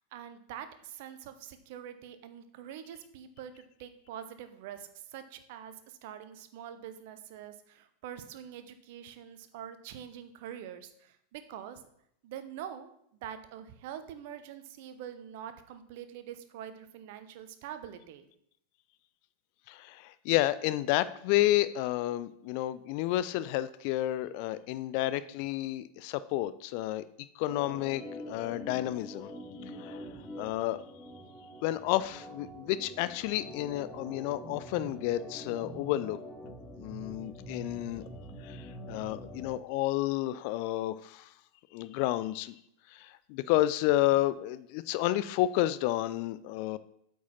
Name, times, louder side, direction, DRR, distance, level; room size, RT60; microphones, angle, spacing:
voice 1, 0.0-11.8 12.2-18.3, right 9 dB, 50° right, 10 dB, 0.8 m, -45 dB
voice 2, 19.7-27.0 27.4-29.3 29.7-30.1 30.4-30.8 31.6-36.2 36.8-38.0 38.4-41.3 41.7-42.5 42.9-46.8, left 15 dB, 45° left, 16 dB, 0.4 m, -30 dB
Organ, 27.4-39.6, equal, 15° left, 1.3 m, -45 dB
8.4 x 4.7 x 5.4 m, 0.72 s
figure-of-eight pair, 90°, 0 cm